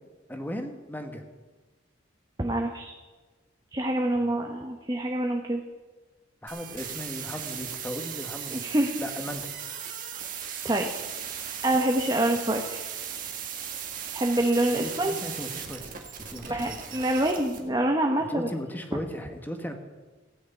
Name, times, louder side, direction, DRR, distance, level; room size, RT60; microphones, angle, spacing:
voice 1, 0.3-1.2 4.2-4.3 6.4-8.6 9.0-9.5 14.8-15.9 16.3-16.8 18.3-19.7, equal, 10° left, 5 dB, 1.3 m, -36 dB
voice 2, 2.4-2.9 3.7-5.6 8.5-9.0 10.6-10.9 11.6-12.8 14.1-15.1 16.4-18.5, right 1 dB, 20° right, 3 dB, 0.9 m, -26 dB
sound 1, 6.5-17.6, right 8 dB, 45° right, 1.7 m, -37 dB
16.0 x 6.5 x 9.1 m, 1.3 s
head